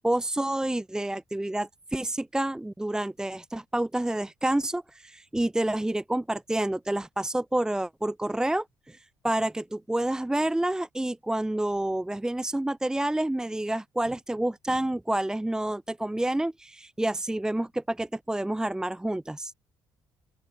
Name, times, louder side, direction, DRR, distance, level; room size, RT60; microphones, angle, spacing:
voice 1, 0.0-19.5, right 1 dB, 10° right, 1.0 m, -29 dB
open air
cardioid pair, 90°, 8 cm